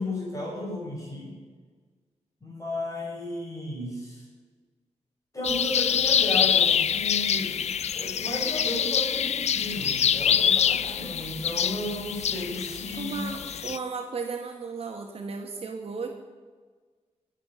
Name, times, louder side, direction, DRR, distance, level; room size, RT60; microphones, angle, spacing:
voice 1, 0.0-1.3 2.4-4.2 5.3-7.5 7.9-13.2, left 1 dB, 30° left, -2 dB, 4.8 m, -34 dB
sound 1, 5.4-13.8, left 8 dB, 65° left, 0.4 m, -25 dB
voice 2, 13.0-16.1, right 4 dB, 55° right, 3 dB, 1.2 m, -35 dB
18.0 x 6.6 x 6.7 m, 1.5 s
wide cardioid pair, 110°, 12 cm